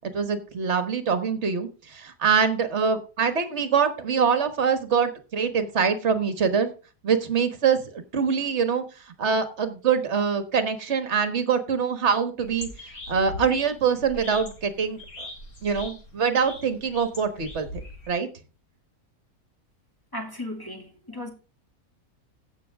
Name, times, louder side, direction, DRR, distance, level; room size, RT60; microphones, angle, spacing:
voice 1, 0.0-6.7 7.0-8.8 9.2-12.7 13.1-15.3 15.6-17.7 18.1-18.3, right 6 dB, 45° right, 1.5 m, -24 dB
sound 1, 12.4-18.1, left 1 dB, 65° left, 2.9 m, -41 dB
voice 2, 20.1-21.3, left 1 dB, 15° left, 2.4 m, -35 dB
16.0 x 6.3 x 3.5 m
omnidirectional pair, 1.7 m